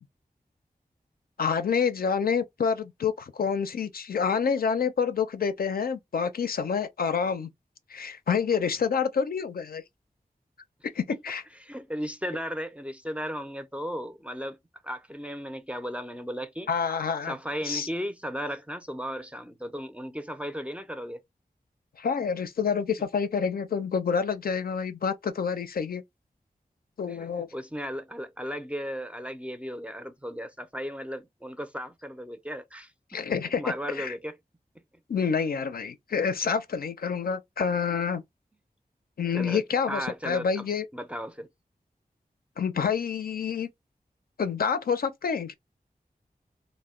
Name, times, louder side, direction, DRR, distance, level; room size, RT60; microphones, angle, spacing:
voice 1, 1.4-7.5 7.9-9.8 10.9-11.4 16.7-17.3 17.6-17.9 22.0-26.0 27.0-27.5 33.1-34.1 35.1-38.2 39.2-40.9 42.6-43.7 44.4-45.5, left 6 dB, 75° left, 0.4 m, -28 dB
voice 2, 11.6-14.6 14.8-16.7 17.3-21.2 27.1-33.2 33.6-34.4 39.3-39.6 39.9-41.5, equal, 10° right, 0.4 m, -35 dB
2.1 x 2.0 x 3.5 m
cardioid pair, 45°, 16 cm